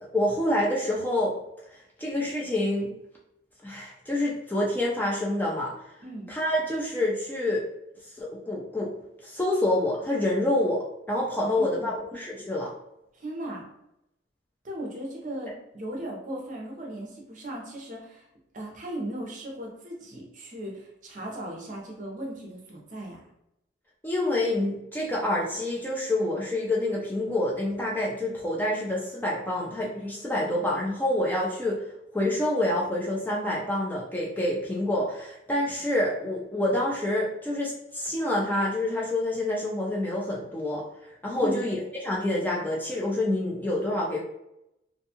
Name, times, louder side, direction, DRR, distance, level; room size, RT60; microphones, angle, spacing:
voice 1, 0.1-1.4 1.7-2.9 3.6-5.7 6.3-7.6 8.2-8.9 9.2-12.7 24.0-31.8 32.1-40.8 41.2-44.2, left 1 dB, 10° left, -4 dB, 0.3 m, -27 dB
voice 2, 6.0-6.3 11.4-11.9 13.1-13.6 14.6-18.2 18.5-23.2 41.3-41.6, right 1 dB, 40° right, -1 dB, 0.6 m, -37 dB
2.5 x 2.3 x 2.7 m, 0.84 s
head